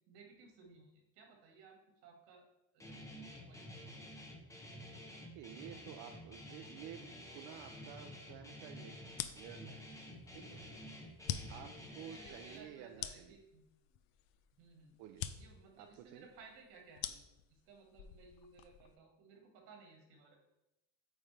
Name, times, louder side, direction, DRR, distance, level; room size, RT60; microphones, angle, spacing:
voice 1, 0.1-2.5 2.7-3.9 11.2-11.7 12.0-13.6 14.6-15.0 15.4-17.2 17.5-20.4, right 4 dB, 80° right, 2 dB, 1.7 m, -59 dB
Guitar, 2.8-12.6, left 1 dB, 10° left, 0.6 m, -51 dB
voice 2, 5.3-7.0 7.3-9.8 10.3-10.6 11.5-13.4 15.0-15.3 15.8-16.3, right 10 dB, 60° right, 5 dB, 0.5 m, -52 dB
sound 1, 9.1-19.0, left 11 dB, 75° left, 0.5 m, -47 dB
8.7 x 3.6 x 3.2 m, 0.89 s
cardioid pair, 155°, 40 cm